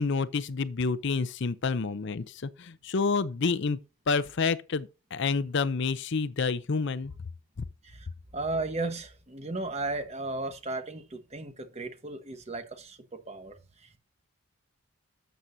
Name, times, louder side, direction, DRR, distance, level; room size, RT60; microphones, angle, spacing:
voice 1, 0.0-3.8 4.1-7.1, left 4 dB, 55° left, 0.5 m, -28 dB
voice 2, 8.3-14.0, right 2 dB, 30° right, 1.2 m, -35 dB
12.5 x 7.5 x 2.7 m
head